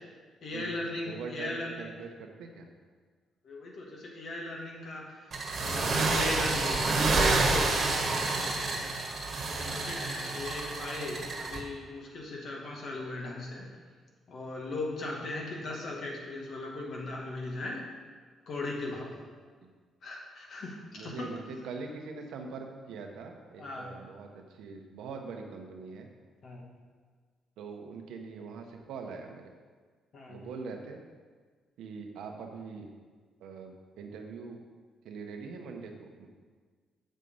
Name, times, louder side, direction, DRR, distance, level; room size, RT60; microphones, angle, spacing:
voice 1, 0.4-1.9 3.4-8.6 9.4-13.7 14.3-17.8 18.5-19.2 20.0-21.3 23.6-23.9 26.4-26.6 30.1-30.4, left 2 dB, 60° left, -1 dB, 2.1 m, -38 dB
voice 2, 1.0-2.7 19.6-19.7 21.0-26.1 27.6-29.5 30.3-31.0 31.8-32.9 33.4-34.6 35.0-36.3, right 4 dB, 80° right, 3 dB, 1.1 m, -42 dB
sound 1, 5.3-11.6, right 3 dB, 45° right, 1.5 m, -29 dB
7.4 x 6.5 x 5.5 m, 1.5 s
cardioid pair, 90°, 0 cm